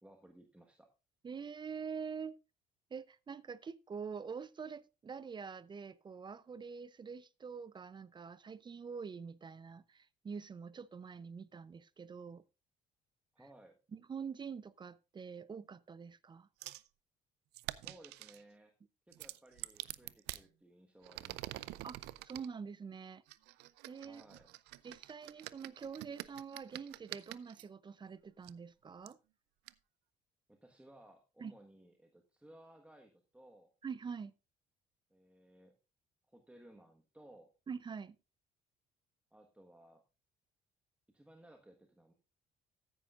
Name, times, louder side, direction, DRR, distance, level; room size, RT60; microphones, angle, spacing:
voice 1, 0.0-0.9 13.3-13.8 17.7-18.7 19.1-21.8 24.0-24.5 30.5-33.7 35.1-35.8 36.3-37.5 39.3-40.0 41.1-42.1, right 1 dB, 5° right, 1.4 m, -60 dB
voice 2, 1.2-2.4 2.9-12.4 13.9-16.5 21.8-23.2 23.9-24.2 24.8-29.2 31.4-31.5 33.8-34.3 37.7-38.2, right 6 dB, 25° right, 0.5 m, -45 dB
sound 1, 16.6-16.9 17.5-18.4 19.1-20.4 21.0-22.5 23.3-27.6 28.4-28.5 29.1-29.2 29.7-29.8, right 18 dB, 90° right, 0.5 m, -46 dB
14.0 x 10.0 x 2.5 m
cardioid pair, 110°, 17 cm